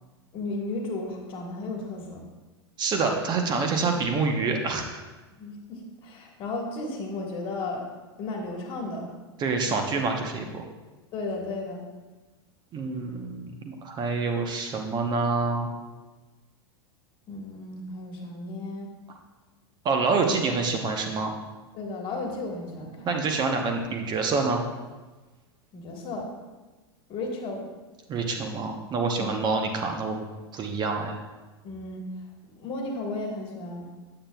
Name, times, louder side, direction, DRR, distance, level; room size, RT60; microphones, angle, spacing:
voice 1, 0.3-2.2 5.4-7.9 8.2-9.1 9.6-9.9 11.1-11.8 17.3-18.9 21.7-23.1 25.7-26.3 27.1-27.7 29.2-29.4 31.6-32.0 32.6-33.9, left 2 dB, 40° left, 1 dB, 1.5 m, -34 dB
voice 2, 2.8-5.0 9.4-10.6 12.7-15.7 19.8-21.4 23.1-24.6 28.1-30.2 30.5-31.2, right 4 dB, 30° right, 3 dB, 0.8 m, -27 dB
8.6 x 7.6 x 2.3 m, 1.2 s
hypercardioid pair, 100°, 14 cm